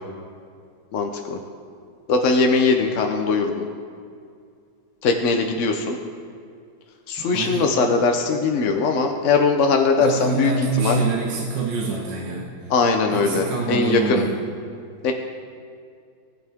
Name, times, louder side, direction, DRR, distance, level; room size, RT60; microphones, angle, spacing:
voice 1, 0.9-1.4 2.1-3.7 5.0-6.0 7.1-10.5 10.8-11.0 12.7-14.3 15.0-15.1, left 4 dB, 60° left, 3 dB, 0.8 m, -20 dB
voice 2, 7.2-7.7 10.0-12.7 13.1-14.3, right 3 dB, 65° right, -2 dB, 1.9 m, -26 dB
19.0 x 9.6 x 3.6 m, 2.3 s
omnidirectional pair, 2.2 m